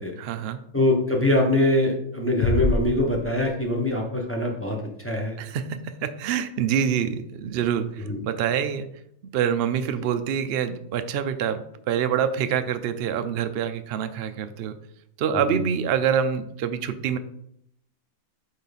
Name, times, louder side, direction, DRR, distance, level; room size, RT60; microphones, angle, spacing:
voice 1, 0.2-0.6 5.4-8.9 9.2-14.8 15.2-17.2, right 8 dB, 70° right, 9 dB, 0.6 m, -26 dB
voice 2, 0.7-5.4 8.0-8.2 15.3-15.6, left 1 dB, 10° left, -1 dB, 0.9 m, -23 dB
sound 1, 2.4-4.1, left 2 dB, 50° left, 0.6 m, -27 dB
8.3 x 3.2 x 4.1 m, 0.73 s
omnidirectional pair, 1.5 m